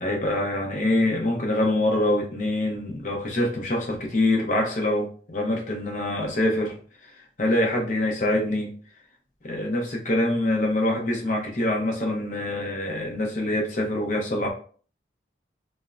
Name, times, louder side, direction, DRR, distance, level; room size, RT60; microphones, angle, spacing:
voice 1, 0.0-6.7 7.4-8.7 9.4-14.5, left 1 dB, 40° left, 0.6 m, -25 dB
3.4 x 2.0 x 2.4 m
head